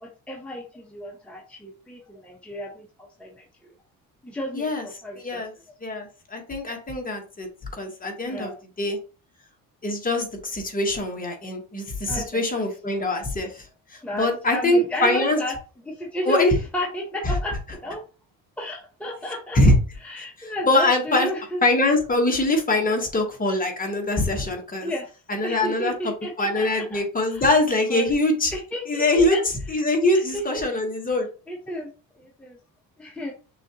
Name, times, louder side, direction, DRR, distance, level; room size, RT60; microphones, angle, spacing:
voice 1, 0.0-2.8 3.2-3.4 4.2-5.4 8.2-8.6 12.1-12.4 14.0-15.5 15.8-17.6 17.8-18.0 18.6-19.6 20.0-21.6 24.8-27.5 27.9-28.1 28.5-29.4 30.1-30.7 31.5-31.9 32.2-32.6 33.0-33.3, equal, 5° left, -1 dB, 0.8 m, -32 dB
voice 2, 4.5-4.8 5.2-5.5 5.8-7.5 7.8-8.5 8.8-9.0 9.8-13.6 14.1-15.4 16.2-16.5 19.5-19.7 20.2-21.3 21.6-24.9 25.3-25.9 26.4-28.5 28.9-29.4 29.7-31.3, left 2 dB, 25° left, 2 dB, 1.2 m, -23 dB
6.2 x 2.5 x 2.9 m, 0.34 s
cardioid pair, 115°, 36 cm